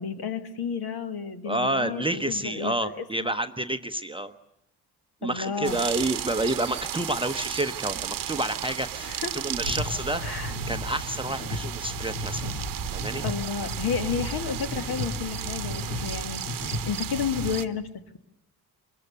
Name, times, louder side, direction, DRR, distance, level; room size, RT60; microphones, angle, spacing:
voice 1, 0.0-3.3 5.2-5.8 9.0-9.3 10.2-10.5 13.2-17.9, left 6 dB, 50° left, 9 dB, 1.7 m, -32 dB
voice 2, 1.4-4.3 5.2-12.4 12.9-13.2, right 1 dB, 10° right, 7 dB, 0.9 m, -29 dB
sound 1, 5.6-17.6, right 11 dB, 45° right, 1.1 m, -34 dB
sound 2, 9.6-17.5, left 1 dB, 80° left, 2.3 m, -35 dB
23.0 x 21.5 x 6.8 m, 0.85 s
figure-of-eight pair, 45°, 49 cm